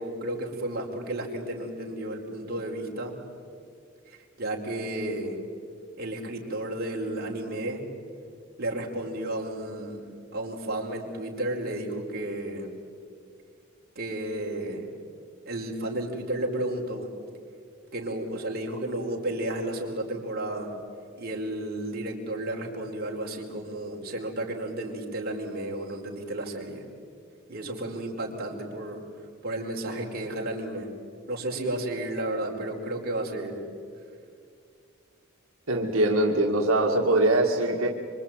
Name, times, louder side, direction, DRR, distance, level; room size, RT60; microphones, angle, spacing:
voice 1, 0.0-3.1 4.1-5.4 6.0-7.8 8.6-12.7 13.9-14.9 15.5-17.1 17.9-20.7 21.2-26.8 27.5-29.0 29.4-30.9 31.3-33.6, right 1 dB, 50° right, -1 dB, 4.6 m, -32 dB
voice 2, 35.7-37.9, right 1 dB, 80° right, 0 dB, 2.2 m, -22 dB
26.0 x 25.0 x 9.1 m, 2.3 s
head